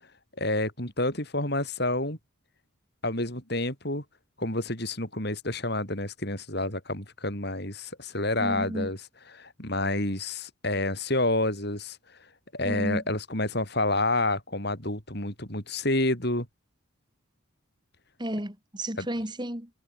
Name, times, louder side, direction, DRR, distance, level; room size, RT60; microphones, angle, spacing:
voice 1, 0.4-2.2 3.0-4.0 4.4-12.0 12.5-16.5 19.0-19.1, left 2 dB, 50° left, 5.9 m, -29 dB
voice 2, 8.4-8.9 12.6-13.0 18.2-19.7, right 1 dB, 20° right, 3.5 m, -32 dB
head